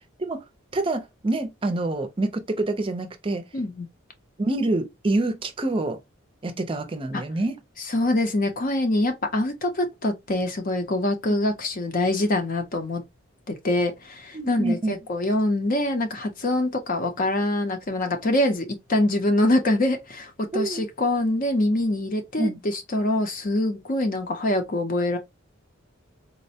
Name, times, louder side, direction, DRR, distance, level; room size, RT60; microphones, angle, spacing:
voice 1, 0.7-3.5 4.4-6.0 6.4-7.6 14.3-15.0 20.5-20.8 22.4-22.6, right 2 dB, 25° right, 0.5 m, -26 dB
voice 2, 3.5-3.9 7.1-7.2 7.9-13.0 13.5-25.2, left 1 dB, 40° left, 0.6 m, -24 dB
4.1 x 2.1 x 2.7 m
head